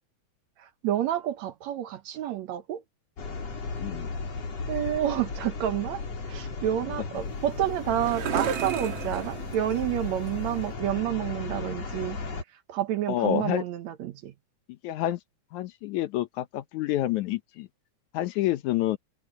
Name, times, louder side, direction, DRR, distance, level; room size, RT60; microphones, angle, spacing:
voice 1, 0.8-2.8 4.7-6.0 6.3-12.2 12.7-14.3, right 11 dB, 70° right, 2.1 m, -29 dB
sound 1, 3.2-12.4, left 4 dB, 55° left, 5.0 m, -35 dB
voice 2, 3.8-4.1 13.1-13.6 14.8-15.2 15.5-17.7 18.1-19.0, left 13 dB, 75° left, 2.2 m, -28 dB
sound 2, 7.1-10.8, right 10 dB, 50° right, 1.7 m, -36 dB
omnidirectional pair, 3.6 m